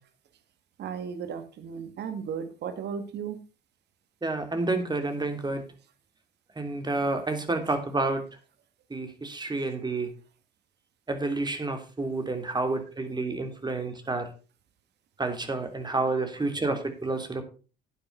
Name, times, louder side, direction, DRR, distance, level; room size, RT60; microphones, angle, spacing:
voice 1, 0.8-3.4, right 7 dB, 60° right, 10 dB, 2.2 m, -35 dB
voice 2, 4.2-5.6 6.5-8.2 8.9-10.1 11.1-14.3 15.2-17.4, right 3 dB, 20° right, 6 dB, 3.2 m, -29 dB
11.5 x 9.5 x 4.1 m, 0.35 s
hypercardioid pair, 60°, 19 cm